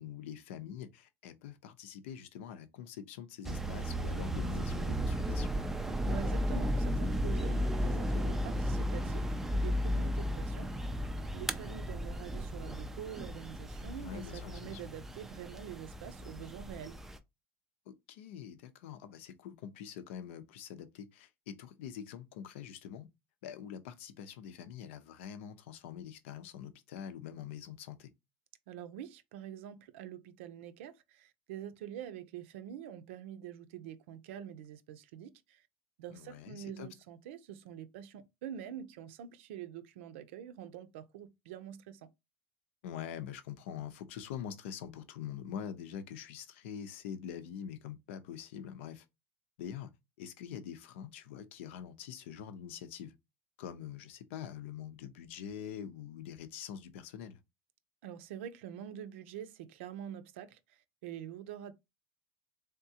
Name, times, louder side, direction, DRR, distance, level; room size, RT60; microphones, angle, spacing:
voice 1, 0.0-5.5 14.0-14.8 17.9-23.1 23.4-28.1 36.1-36.9 42.8-49.0 49.6-49.9 50.2-53.1 53.6-57.4, left 9 dB, 90° left, 0.7 m, -45 dB
sound 1, 3.4-17.2, equal, 5° right, 0.3 m, -34 dB
voice 2, 6.0-11.0 11.3-17.0 28.7-35.6 36.0-42.1 58.0-61.7, right 9 dB, 85° right, 0.6 m, -46 dB
3.6 x 3.5 x 2.8 m
cardioid pair, 165°, 6 cm